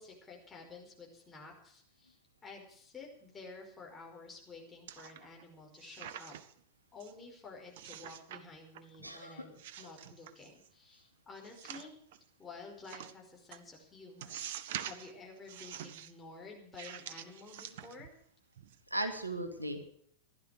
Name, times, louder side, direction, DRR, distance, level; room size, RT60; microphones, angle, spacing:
voice 1, 0.0-6.3 6.9-11.9 12.4-14.4 14.8-18.1, left 4 dB, 15° left, -1 dB, 5.1 m, -51 dB
sound 1, 4.9-5.4 5.7-6.6 7.0-7.1 7.8-8.4 8.7-9.2 9.6-10.7 11.4-12.2 12.8-13.1 13.5-13.6 14.2-15.1 15.5-16.1 16.7-18.2 18.6-18.7, right 10 dB, 55° right, 0.9 m, -46 dB
voice 2, 9.0-9.5 18.9-19.9, right 1 dB, 85° right, 7 dB, 1.9 m, -37 dB
15.5 x 11.5 x 6.7 m, 0.64 s
figure-of-eight pair, 90°, 0 cm